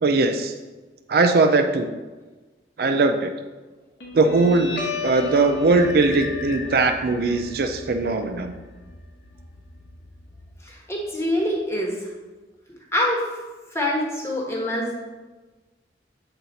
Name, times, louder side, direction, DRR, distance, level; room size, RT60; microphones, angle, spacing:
voice 1, 0.0-0.5 1.1-1.9 2.8-3.3 4.1-8.5, right 3 dB, 55° right, 7 dB, 0.4 m, -20 dB
Guitar, 4.0-11.0, left 3 dB, 75° left, 1.3 m, -35 dB
sound 1, 5.7-8.6, left 5 dB, 45° left, 0.5 m, -38 dB
voice 2, 10.6-11.9 12.9-13.3 13.7-15.0, left 1 dB, 15° left, -2 dB, 1.2 m, -25 dB
7.9 x 4.1 x 4.0 m, 1.3 s
head